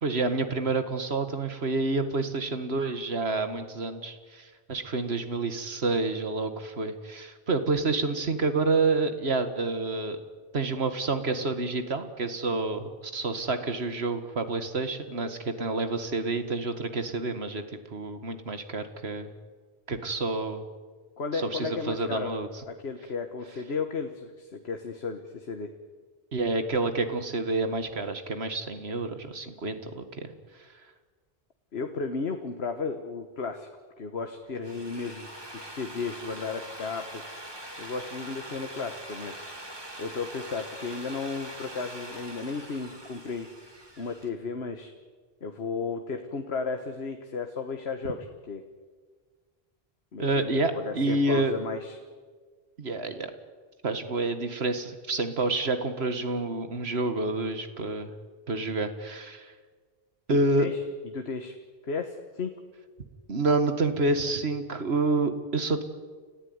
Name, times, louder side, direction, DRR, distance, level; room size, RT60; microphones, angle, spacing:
voice 1, 0.0-10.2 10.5-17.6 17.9-19.3 19.9-20.7 21.3-22.5 26.3-30.3 50.2-51.5 52.8-53.3 53.8-58.1 58.5-59.5 60.3-60.7 63.3-65.8, right 3 dB, 75° right, 9 dB, 2.0 m, -28 dB
voice 2, 21.2-22.3 22.7-25.7 31.7-33.7 34.0-37.3 37.8-39.4 40.0-43.5 44.0-44.9 45.4-48.6 50.1-52.0 60.6-60.8 61.1-61.6 61.9-62.5, left 4 dB, 80° left, 6 dB, 1.6 m, -34 dB
Drill, 34.4-44.3, right 1 dB, 25° right, 2.5 m, -43 dB
30.0 x 15.0 x 9.6 m, 1.5 s
omnidirectional pair, 1.1 m